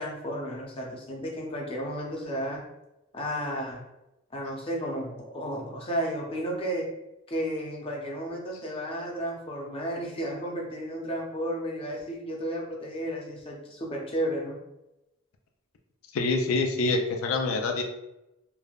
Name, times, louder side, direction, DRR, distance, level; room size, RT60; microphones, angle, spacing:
voice 1, 0.0-2.6 3.1-3.8 4.3-6.9 7.3-14.6, equal, 25° left, -1 dB, 0.5 m, -33 dB
voice 2, 16.1-17.8, left 3 dB, 85° left, 4 dB, 0.4 m, -26 dB
3.3 x 2.1 x 2.3 m, 0.93 s
head